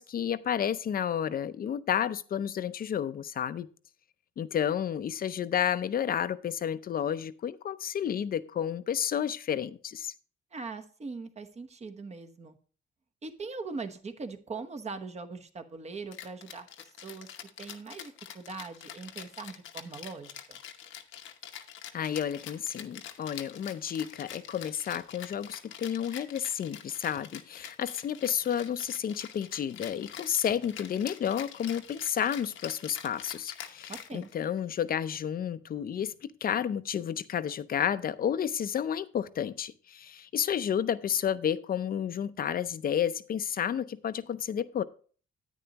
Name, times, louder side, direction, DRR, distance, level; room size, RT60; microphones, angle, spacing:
voice 1, 0.0-3.7 4.4-10.1 21.9-44.8, left 9 dB, 50° left, 0.6 m, -31 dB
voice 2, 10.5-12.6 13.2-17.3 17.6-20.6 33.9-34.3, right 4 dB, 35° right, 1.1 m, -41 dB
Rattle (instrument), 16.1-34.6, left 9 dB, 80° left, 0.9 m, -45 dB
10.0 x 9.1 x 2.9 m
cardioid pair, 90°, 20 cm